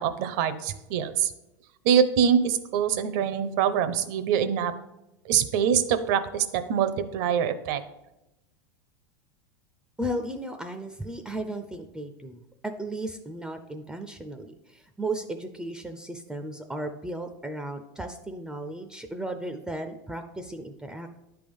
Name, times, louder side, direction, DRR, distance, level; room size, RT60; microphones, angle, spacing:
voice 1, 0.0-1.3 1.8-4.7 5.3-7.8, right 8 dB, 60° right, 11 dB, 0.7 m, -24 dB
voice 2, 10.0-21.1, right 1 dB, 5° right, 7 dB, 0.4 m, -35 dB
10.0 x 3.5 x 5.3 m, 0.94 s
supercardioid pair, 120°, 10 cm